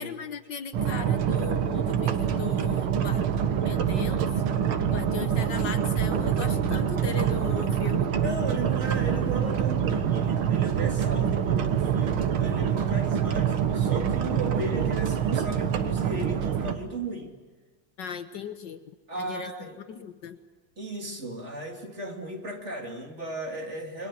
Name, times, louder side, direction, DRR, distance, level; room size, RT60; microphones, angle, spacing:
voice 1, 0.0-3.3 3.6-4.4 4.9-8.1 18.0-18.8 19.1-20.4, left 7 dB, 65° left, 10 dB, 1.6 m, -38 dB
sound 1, 0.7-16.7, right 8 dB, 90° right, 2.2 m, -25 dB
voice 2, 8.2-17.3 19.1-19.8 20.8-24.1, right 2 dB, 35° right, 2 dB, 3.2 m, -36 dB
29.5 x 22.5 x 7.6 m, 1.3 s
omnidirectional pair, 2.2 m